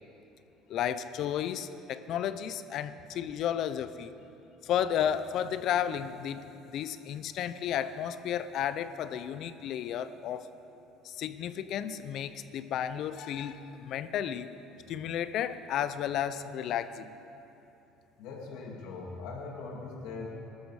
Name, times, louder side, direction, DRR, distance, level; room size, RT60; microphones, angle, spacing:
voice 1, 0.7-4.1 4.6-10.5 11.0-14.5 14.9-17.1, left 9 dB, 55° left, 13 dB, 0.7 m, -33 dB
voice 2, 18.2-20.3, left 4 dB, 75° left, -1 dB, 2.2 m, -41 dB
20.0 x 13.0 x 4.9 m, 3.0 s
cardioid pair, 120°, 0 cm